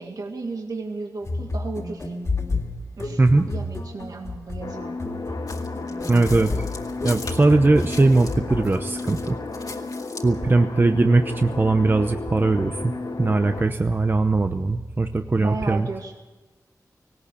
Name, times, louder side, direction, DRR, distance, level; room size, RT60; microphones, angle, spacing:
voice 1, 0.0-2.1 3.0-3.2 3.5-5.3 15.4-16.1, right 3 dB, 70° right, 1 dB, 2.0 m, -34 dB
sound 1, 1.2-8.8, left 2 dB, 50° left, 2.6 m, -31 dB
voice 2, 3.2-3.5 6.1-6.7 7.0-9.4 10.2-12.9 13.2-15.9, right 3 dB, 30° right, 7 dB, 0.8 m, -20 dB
sound 2, 4.6-13.6, left 3 dB, 90° left, 3.0 m, -33 dB
sound 3, 5.5-8.4 8.6-10.3, left 3 dB, 65° left, 2.2 m, -40 dB
18.5 x 18.0 x 8.4 m, 1.1 s
wide cardioid pair, 95°, 7 cm